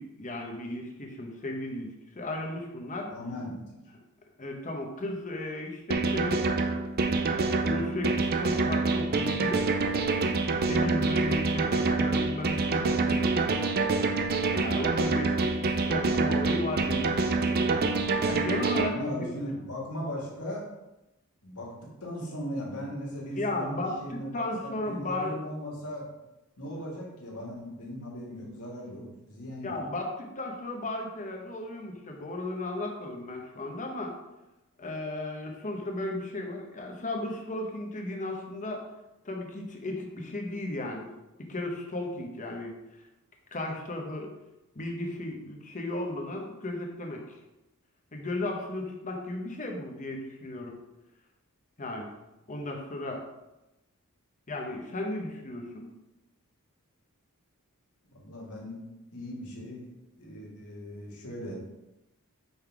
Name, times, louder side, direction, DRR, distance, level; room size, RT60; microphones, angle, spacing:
voice 1, 0.0-3.1 4.4-6.6 7.6-9.7 10.7-13.5 14.6-17.6 18.2-19.3 23.4-25.4 29.6-34.1 34.8-38.8 39.2-41.1 41.5-42.7 43.5-44.3 44.7-47.4 48.1-50.7 51.8-52.1 52.5-53.2 54.5-55.9, left 1 dB, 35° left, 2 dB, 0.9 m, -35 dB
voice 2, 3.1-3.6 18.8-20.7 21.4-21.7 22.0-26.0 26.6-29.8 58.1-58.8 59.1-59.8 60.2-61.6, equal, 85° left, -3 dB, 1.9 m, -38 dB
sound 1, 5.9-18.9, right 3 dB, 45° right, 0.5 m, -26 dB
5.4 x 3.9 x 4.6 m, 0.97 s
head